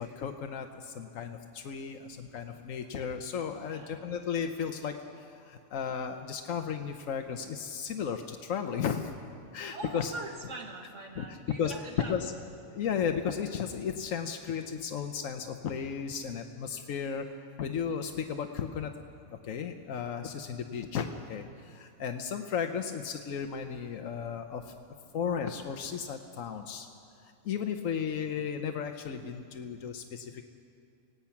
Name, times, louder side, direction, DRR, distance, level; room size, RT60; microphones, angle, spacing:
voice 1, 0.0-9.1 9.5-10.1 11.2-11.3 11.6-11.7 12.1-12.3 12.7-17.3 17.6-18.9 19.3-24.7 25.1-26.9 27.2-30.4, left 7 dB, 85° left, 5 dB, 1.3 m, -34 dB
voice 2, 3.5-4.0 9.6-12.3 25.1-25.2, right 2 dB, 70° right, 3 dB, 2.2 m, -42 dB
26.0 x 18.0 x 5.9 m, 2.4 s
omnidirectional pair, 1.3 m